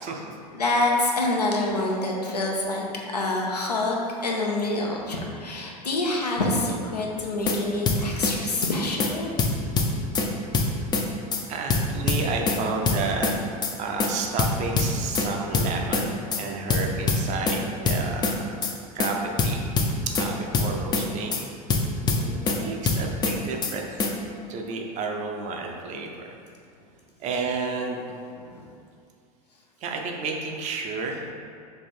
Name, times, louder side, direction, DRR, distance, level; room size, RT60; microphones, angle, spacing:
voice 1, 0.0-0.4 11.5-13.3 13.8-18.6 18.9-19.6 20.1-21.4 22.1-24.0 24.5-26.3 27.2-28.0 29.8-31.2, right 4 dB, 35° right, 1 dB, 0.6 m, -31 dB
voice 2, 0.5-2.9 3.1-9.3 28.4-28.7, left 2 dB, 85° left, -1 dB, 0.7 m, -26 dB
sound 1, 7.2-7.6 7.9-8.3 8.6-8.7 9.0-9.1 9.4-10.3 10.5-11.0 11.3-11.4 11.7-12.6 12.9-13.3 13.6-13.7 14.0-14.1 14.4-15.3 15.5-16.0 16.3-16.4 16.7-17.6 17.9-18.3 18.6-18.7 19.0-19.1 19.4-20.3 20.5-21.0 21.3-21.4 21.7-22.6 22.9-23.3 23.6-23.7 24.0-24.1, left 4 dB, 20° left, 0.5 m, -23 dB
3.3 x 3.3 x 4.2 m, 2.3 s
figure-of-eight pair, 80°, 20 cm